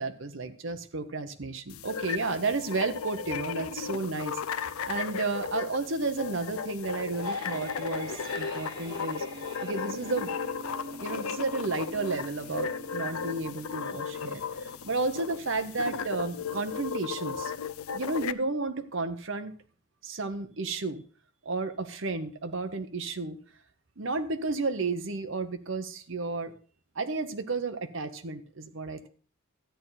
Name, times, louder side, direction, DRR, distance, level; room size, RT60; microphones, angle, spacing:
voice 1, 0.0-9.2 9.6-10.3 11.0-17.5 17.9-19.5 20.0-21.0 21.4-23.4 24.0-26.5 27.0-29.1, right 3 dB, 65° right, 8 dB, 1.0 m, -32 dB
sound 1, 1.7-18.3, left 6 dB, 85° left, 0.5 m, -35 dB
sound 2, 6.9-17.9, right 1 dB, 20° right, 2.3 m, -47 dB
13.0 x 9.1 x 4.1 m, 0.41 s
head